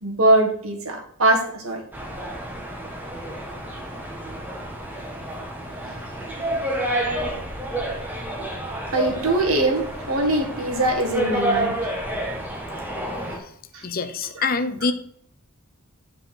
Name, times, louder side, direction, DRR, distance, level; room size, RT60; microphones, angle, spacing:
voice 1, 0.0-1.8 5.9-6.0 8.9-11.8, right 2 dB, 80° right, 1 dB, 1.8 m, -22 dB
sound 1, 1.9-13.4, right 1 dB, 10° right, 1.3 m, -29 dB
voice 2, 13.8-14.9, left 4 dB, 45° left, 10 dB, 0.7 m, -25 dB
9.2 x 4.7 x 4.3 m, 0.64 s
head